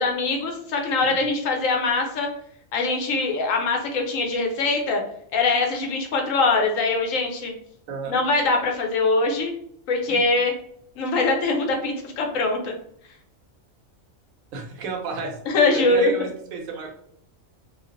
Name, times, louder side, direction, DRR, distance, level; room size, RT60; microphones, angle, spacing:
voice 1, 0.0-2.3 2.7-5.0 5.3-7.5 8.1-9.5 9.9-10.5 11.0-12.7 15.5-16.1, left 3 dB, 80° left, 2 dB, 1.0 m, -22 dB
voice 2, 7.9-8.2 10.1-10.2 14.5-15.4 15.7-16.9, right 4 dB, 85° right, 2 dB, 1.0 m, -32 dB
2.5 x 2.2 x 2.4 m, 0.68 s
omnidirectional pair, 1.4 m